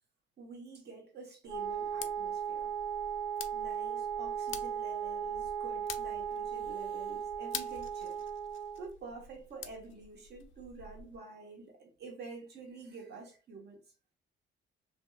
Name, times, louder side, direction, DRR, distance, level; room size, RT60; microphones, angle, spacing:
voice 1, 0.4-2.7 3.5-8.2 8.8-13.8, right 3 dB, 55° right, 1.1 m, -48 dB
sound 1, 1.4-11.2, left 7 dB, 75° left, 0.5 m, -48 dB
Wind instrument woodwind instrument, 1.5-8.9, right 8 dB, 75° right, 0.8 m, -37 dB
2.9 x 2.8 x 2.3 m
cardioid pair, 90°, 20 cm